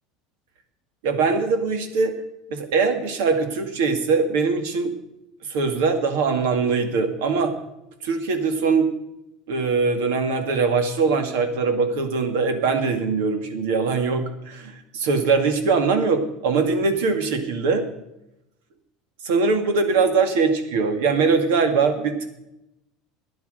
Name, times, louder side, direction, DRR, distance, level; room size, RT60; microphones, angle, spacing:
voice 1, 1.0-2.1 2.5-5.0 5.5-7.5 8.0-8.9 9.5-17.9 19.2-22.3, right 4 dB, 85° right, 7 dB, 2.1 m, -22 dB
12.5 x 10.0 x 6.5 m, 0.87 s
supercardioid pair, 140°, 0 cm